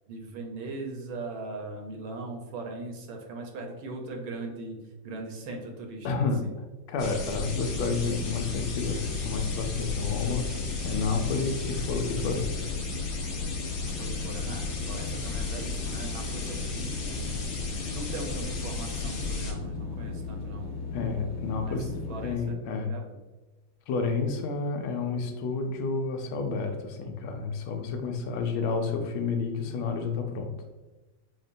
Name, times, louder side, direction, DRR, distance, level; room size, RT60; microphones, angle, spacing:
voice 1, 0.1-4.8 5.0-6.5 13.8-17.5 17.9-20.7 21.6-21.8 22.1-23.2, right 2 dB, 75° right, 2 dB, 1.4 m, -39 dB
voice 2, 6.0-6.4 6.9-12.7 20.9-21.9 22.2-22.9 23.9-30.5, left 4 dB, 85° left, 5 dB, 1.4 m, -30 dB
sound 1, 7.0-19.5, left 3 dB, 60° left, 1.4 m, -35 dB
sound 2, 7.4-22.4, left 4 dB, 40° left, 1.4 m, -36 dB
5.7 x 2.1 x 2.5 m, 1.1 s
omnidirectional pair, 2.3 m